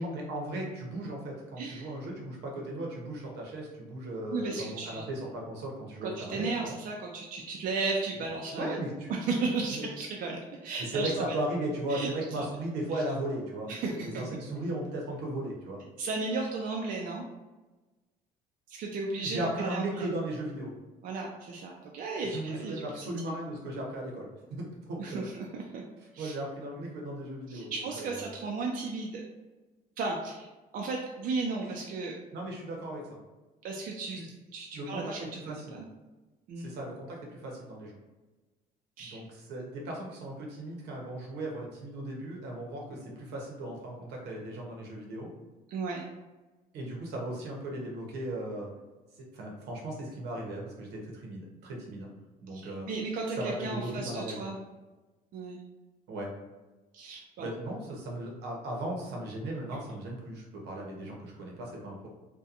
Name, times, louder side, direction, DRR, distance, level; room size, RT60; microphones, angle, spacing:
voice 1, 0.0-6.7 8.5-9.1 9.7-9.9 10.8-15.8 19.2-20.7 22.2-25.3 26.2-28.3 31.6-31.7 32.3-33.2 34.1-34.3 34.7-35.1 35.5-35.8 36.6-38.0 39.0-45.3 46.7-48.7 49.2-52.1 52.4-52.9 53.4-54.4 56.1-56.3 57.4-62.1, right 1 dB, 80° right, -1 dB, 0.8 m, -37 dB
voice 2, 1.6-1.9 4.3-5.0 6.0-8.8 9.1-11.4 11.9-12.5 12.9-13.0 13.7-14.2 16.0-17.2 18.7-20.1 21.0-23.1 25.0-25.8 26.1-26.3 27.5-29.2 30.0-30.5 30.7-32.1 33.6-35.9 36.5-36.7 39.0-39.2 45.7-46.1 52.5-54.6 55.3-55.6 56.9-57.5, right 3 dB, 55° right, 0 dB, 0.4 m, -35 dB
2.8 x 2.2 x 2.4 m, 1.2 s
cardioid pair, 110°, 17 cm